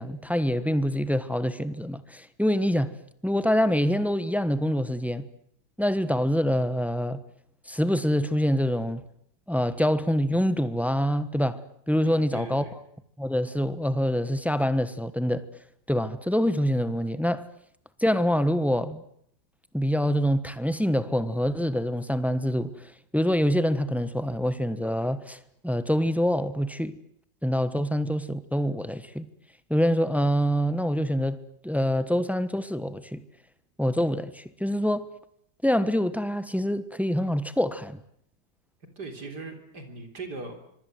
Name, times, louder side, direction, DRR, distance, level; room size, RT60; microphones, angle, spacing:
voice 1, 0.0-2.9 3.2-5.2 5.8-7.2 7.7-9.1 9.5-11.6 11.9-12.7 13.2-15.4 15.9-17.4 18.0-19.0 19.7-22.8 23.1-27.0 27.4-29.3 29.7-33.2 33.8-35.1 35.6-38.0, equal, ahead, 0.9 m, -25 dB
voice 2, 12.0-12.7 39.0-40.7, right 3 dB, 60° right, 4.2 m, -39 dB
25.5 x 23.5 x 7.8 m
omnidirectional pair, 2.0 m